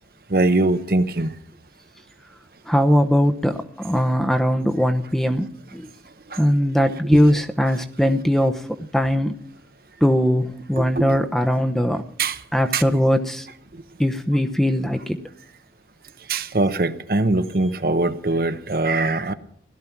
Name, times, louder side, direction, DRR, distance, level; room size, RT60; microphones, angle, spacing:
voice 1, 0.3-1.3 6.3-6.4 10.8-11.0 12.2-12.4 12.7-12.8 16.3-19.3, right 2 dB, 55° right, 0.9 m, -21 dB
voice 2, 2.7-5.9 6.4-8.6 8.9-9.3 10.0-12.0 12.5-13.5 14.0-15.2, equal, ahead, 0.8 m, -20 dB
17.0 x 12.5 x 6.0 m
head